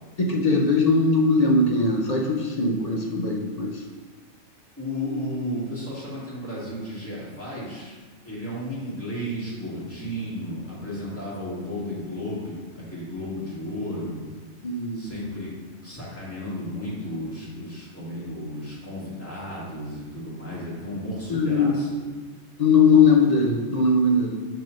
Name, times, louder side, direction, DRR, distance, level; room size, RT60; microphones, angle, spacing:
voice 1, 0.2-3.8 14.6-15.1 21.3-21.8 22.6-24.4, left 3 dB, 50° left, -1 dB, 0.4 m, -20 dB
voice 2, 4.8-7.9 8.2-14.2 14.9-15.5 15.8-22.1, left 1 dB, 10° left, -8 dB, 1.8 m, -33 dB
5.7 x 3.3 x 5.1 m, 1.4 s
omnidirectional pair, 1.5 m